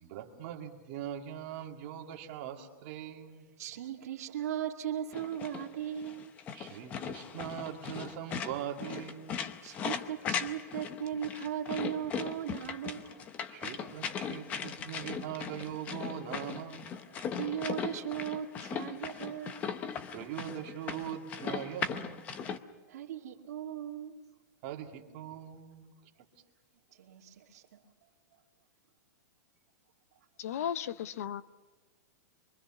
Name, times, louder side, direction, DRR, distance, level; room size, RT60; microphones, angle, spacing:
voice 1, 0.0-3.5 6.5-9.5 13.5-16.9 20.1-22.3 24.6-25.9 26.2-26.3, right 10 dB, 30° right, 1 dB, 2.2 m, -41 dB
voice 2, 3.6-6.3 9.6-13.3 13.5-13.7 17.1-19.6 22.9-24.2 26.9-27.8 28.3-28.4, right 10 dB, 60° right, 2 dB, 2.3 m, -38 dB
sound 1, 5.1-22.6, left 7 dB, 15° left, 0.7 m, -38 dB
sound 2, 11.1-11.3 12.0-12.2 13.0-13.1 13.9-14.0 14.8-14.9 15.7-15.9, left 1 dB, 35° left, 2.6 m, -55 dB
voice 3, 30.4-31.4, left 9 dB, 55° left, 15 dB, 0.7 m, -35 dB
26.0 x 24.0 x 6.0 m, 1.3 s
supercardioid pair, 180°, 10 cm